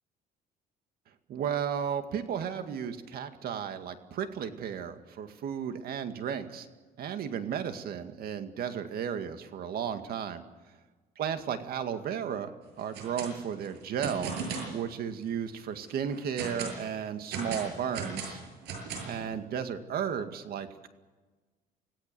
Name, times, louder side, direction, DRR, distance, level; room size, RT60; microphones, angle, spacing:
voice 1, 1.3-6.7 7.0-10.4 11.2-12.5 12.8-14.4 14.7-18.4 19.0-20.9, right 8 dB, 65° right, 8 dB, 2.1 m, -34 dB
sound 1, 12.8-13.3 13.6-14.7 15.2-15.3 15.8-16.8 17.3-19.2, right 5 dB, 85° right, 7.5 m, -36 dB
26.5 x 17.5 x 7.0 m, 1.3 s
cardioid pair, 110°, 17 cm